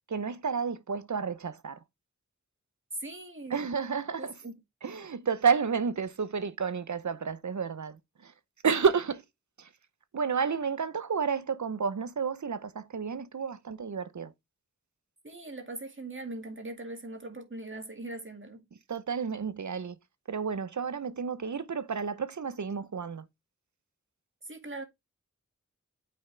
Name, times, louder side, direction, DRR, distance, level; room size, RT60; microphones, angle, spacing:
voice 1, 0.1-1.8 3.5-4.3 4.8-8.3 8.6-9.2 9.6-9.7 10.1-14.3 18.9-20.0 20.3-23.3, right 6 dB, 70° right, 0.8 m, -31 dB
voice 2, 3.0-3.6 4.2-4.5 15.2-18.7 24.4-24.8, right 2 dB, 40° right, 2.2 m, -41 dB
8.7 x 5.7 x 3.3 m
wide cardioid pair, 55°, 31 cm